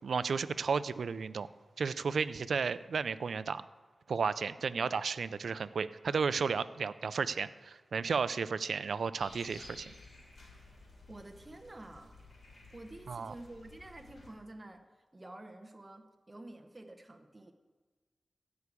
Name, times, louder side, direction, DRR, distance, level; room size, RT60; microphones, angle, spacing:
voice 1, 0.0-1.5 1.8-3.6 4.1-9.9 13.1-13.3, right 5 dB, 90° right, 15 dB, 0.4 m, -33 dB
sound 1, 9.2-14.3, left 2 dB, 70° left, 3.3 m, -55 dB
voice 2, 11.1-12.2 12.7-14.9 15.1-17.5, right 1 dB, 25° right, 5 dB, 0.9 m, -49 dB
14.5 x 4.9 x 8.3 m, 1.3 s
wide cardioid pair, 85°, 0 cm